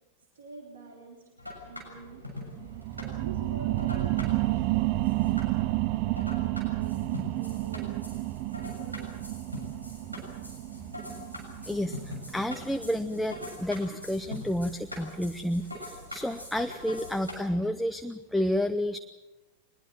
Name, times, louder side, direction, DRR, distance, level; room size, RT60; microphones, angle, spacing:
voice 1, 0.4-1.3 1.6-2.6 3.0-5.4 5.9-6.9 7.3-8.1 8.8-9.1 15.1-15.2, right 3 dB, 65° right, 1 dB, 3.6 m, -47 dB
sound 1, 1.4-17.4, left 1 dB, 90° right, 6.7 m, -43 dB
sound 2, 2.6-13.7 14.2-14.3, right 17 dB, 45° right, 0.7 m, -31 dB
voice 2, 11.6-19.0, left 1 dB, ahead, 9 dB, 0.8 m, -30 dB
24.0 x 21.0 x 7.6 m, 1.1 s
figure-of-eight pair, 90°, 0 cm